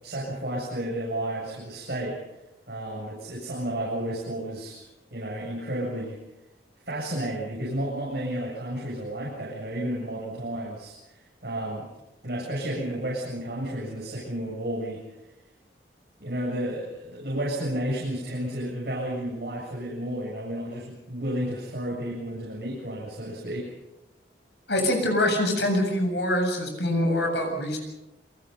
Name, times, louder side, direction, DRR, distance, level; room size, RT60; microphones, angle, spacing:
voice 1, 0.0-2.2 2.7-6.2 6.9-11.9 12.2-15.0 16.2-23.7, right 1 dB, 60° right, -4 dB, 7.7 m, -32 dB
voice 2, 24.7-27.8, left 1 dB, 75° left, 4 dB, 7.8 m, -24 dB
28.5 x 23.5 x 5.7 m, 0.96 s
head